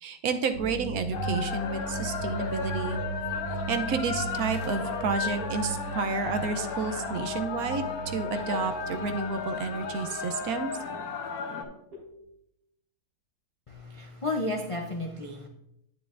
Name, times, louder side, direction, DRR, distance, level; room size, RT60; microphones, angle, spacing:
voice 1, 0.0-3.0 3.7-10.7, right 5 dB, 75° right, 8 dB, 1.1 m, -31 dB
sound 1, 0.5-11.3 11.9-12.2, right 3 dB, 90° right, 4.5 m, -38 dB
sound 2, 1.1-11.6, left 5 dB, 75° left, 1.4 m, -34 dB
voice 2, 13.7-15.5, left 2 dB, 50° left, 3 dB, 0.3 m, -32 dB
9.3 x 9.2 x 2.5 m, 0.80 s
omnidirectional pair, 1.6 m